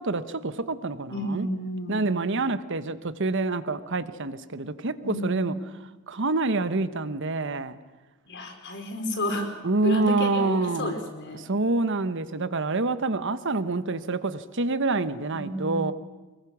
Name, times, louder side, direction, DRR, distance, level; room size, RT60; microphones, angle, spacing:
voice 1, 0.0-1.5 1.9-5.5 6.1-7.8 9.6-11.0 11.3-15.9, right 3 dB, 60° right, 13 dB, 1.1 m, -27 dB
voice 2, 1.1-2.1 5.0-5.8 8.3-9.5 9.8-11.5 15.3-15.9, left 1 dB, 55° left, 3 dB, 4.3 m, -31 dB
24.5 x 22.5 x 6.2 m, 1.2 s
head